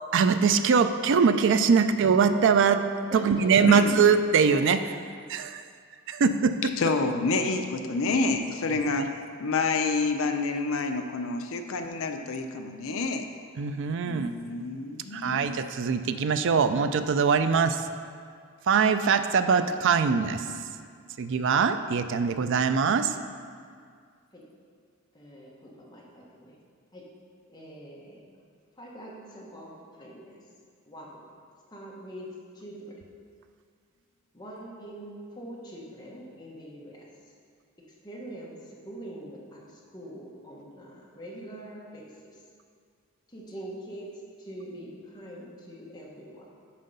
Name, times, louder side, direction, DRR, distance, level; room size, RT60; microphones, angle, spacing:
voice 1, 0.1-2.8 3.1-4.9 5.3-5.5 6.1-6.6 13.6-14.4 15.1-17.8 18.7-20.4 21.2-23.1, right 6 dB, 55° right, 10 dB, 0.4 m, -22 dB
voice 2, 3.1-3.6 4.8-5.1 24.3-24.4 25.1-26.5 26.9-27.0 27.5-28.2 28.8-30.4 30.8-31.2 31.7-32.3 32.5-32.9 34.3-37.3 38.0-42.4 43.3-44.1 44.4-46.5, right 1 dB, 20° left, -4 dB, 1.1 m, -44 dB
voice 3, 6.8-13.3 14.0-15.5, left 3 dB, 60° left, 6 dB, 0.5 m, -28 dB
7.5 x 4.5 x 5.4 m, 2.1 s
head